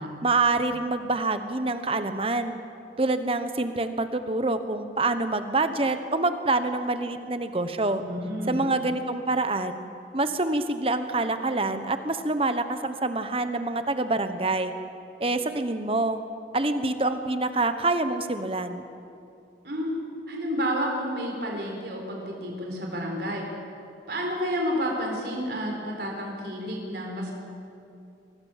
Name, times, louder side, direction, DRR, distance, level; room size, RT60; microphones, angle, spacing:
voice 1, 0.2-2.6 3.0-8.0 8.5-9.8 10.1-14.7 15.2-16.2 16.5-18.8, right 2 dB, 30° right, 9 dB, 1.1 m, -26 dB
voice 2, 8.0-8.6 19.6-20.0 20.3-23.5 24.1-27.3, equal, 65° right, 0 dB, 4.1 m, -30 dB
24.0 x 18.5 x 7.4 m, 2.6 s
head